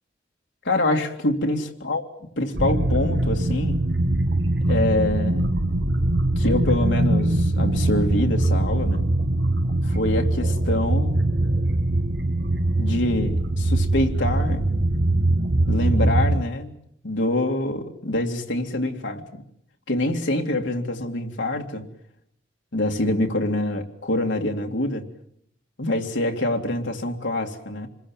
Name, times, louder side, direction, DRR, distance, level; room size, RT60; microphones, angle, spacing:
voice 1, 0.6-3.8 4.7-5.5 6.4-9.1 9.8-11.2 12.8-14.7 15.7-16.7 17.0-19.4 19.9-21.8 22.7-25.1 25.8-27.9, left 1 dB, 90° left, 2 dB, 2.4 m, -25 dB
sound 1, 2.5-16.4, right 1 dB, 65° right, 1.4 m, -22 dB
26.5 x 21.0 x 7.3 m, 0.70 s
head